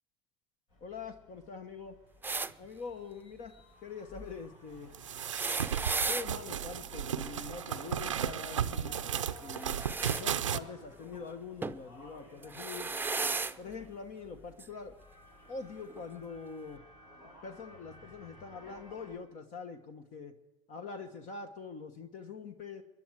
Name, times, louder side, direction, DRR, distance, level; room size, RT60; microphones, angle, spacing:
sound 1, 0.7-19.2, equal, 70° left, 5.4 m, -55 dB
voice 1, 0.8-2.0 2.6-3.5 3.8-4.9 6.1-9.1 9.4-9.8 10.1-12.9 13.6-15.0 15.5-16.8 17.4-20.3 20.7-22.8, left 5 dB, 55° left, 7 dB, 1.3 m, -44 dB
sound 2, 2.2-2.5 5.1-6.3 9.5-10.2 11.6-11.8 12.4-13.5 14.6-14.7 15.9-16.0, right 4 dB, 15° right, 0.6 m, -34 dB
sound 3, 4.9-10.6, right 9 dB, 90° right, 0.5 m, -34 dB
25.5 x 11.0 x 4.7 m, 1.1 s
hypercardioid pair, 65°, 16 cm